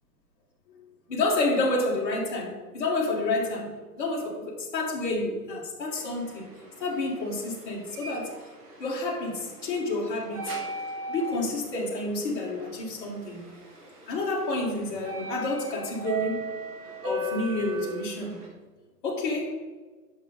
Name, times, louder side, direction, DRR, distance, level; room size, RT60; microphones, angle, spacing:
voice 1, 1.1-6.5 6.8-8.4 8.8-10.5 11.1-13.4 14.1-16.5 17.0-18.4 19.0-19.6, left 2 dB, 30° left, -5 dB, 1.9 m, -29 dB
sound 1, 5.9-18.5, right 2 dB, 20° right, 1.1 m, -39 dB
8.5 x 6.3 x 4.0 m, 1.4 s
figure-of-eight pair, 140°, 49 cm